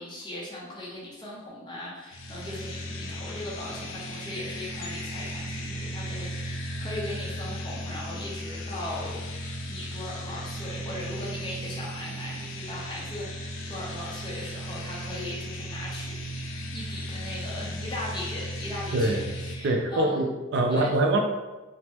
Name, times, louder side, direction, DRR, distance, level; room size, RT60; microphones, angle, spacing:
voice 1, 0.0-9.3 9.7-16.4 16.7-20.2 20.7-20.9, left 1 dB, 20° left, -5 dB, 0.6 m, -38 dB
sound 1, 2.1-19.6, equal, 75° left, 0.4 m, -36 dB
voice 2, 18.9-19.2 19.6-21.2, right 2 dB, 60° right, 3 dB, 0.3 m, -24 dB
2.9 x 2.0 x 3.3 m, 1.1 s
head